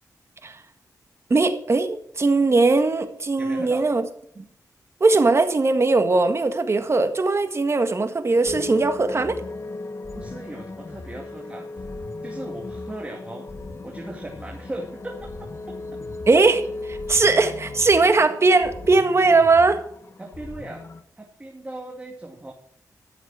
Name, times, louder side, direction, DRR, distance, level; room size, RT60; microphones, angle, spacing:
voice 1, 1.3-4.0 4.4-4.5 5.0-9.4 16.3-19.8, right 3 dB, 40° right, 8 dB, 1.6 m, -19 dB
voice 2, 3.4-3.9 10.1-11.7 12.2-13.4 13.8-15.3 17.0-17.2 20.2-20.8 21.2-22.5, right 1 dB, 20° right, 1 dB, 2.2 m, -37 dB
sound 1, 8.4-21.0, left 2 dB, 40° left, 1.2 m, -36 dB
13.0 x 7.1 x 6.3 m, 0.68 s
cardioid pair, 75°, 7 cm